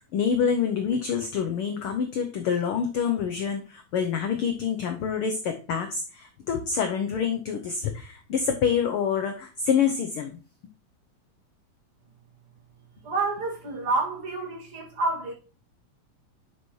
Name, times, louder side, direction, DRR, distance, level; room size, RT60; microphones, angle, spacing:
voice 1, 0.1-10.3, left 7 dB, 75° left, 1.3 m, -27 dB
voice 2, 13.0-15.3, right 3 dB, 50° right, 3.0 m, -28 dB
11.0 x 5.9 x 3.1 m
omnidirectional pair, 3.4 m